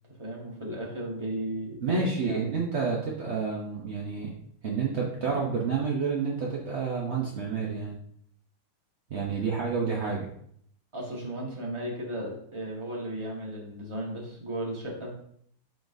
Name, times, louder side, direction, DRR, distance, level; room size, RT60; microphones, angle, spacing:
voice 1, 0.1-2.4 9.3-9.4 10.9-15.2, right 1 dB, 15° right, -2 dB, 1.3 m, -35 dB
voice 2, 1.8-4.3 4.6-8.0 9.1-10.3, right 5 dB, 60° right, -2 dB, 0.7 m, -29 dB
12.0 x 4.0 x 2.6 m, 0.68 s
omnidirectional pair, 2.4 m